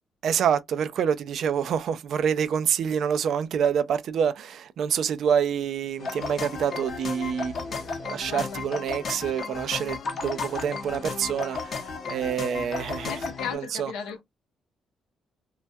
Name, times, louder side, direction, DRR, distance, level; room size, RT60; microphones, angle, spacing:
voice 1, 0.2-13.1 13.8-13.9, right 8 dB, 65° right, 0.3 m, -27 dB
sound 1, 6.0-13.6, left 4 dB, 55° left, 0.7 m, -34 dB
voice 2, 8.1-8.6 12.5-14.2, left 7 dB, 90° left, 0.5 m, -37 dB
2.2 x 2.1 x 2.6 m
cardioid pair, 90°, 0 cm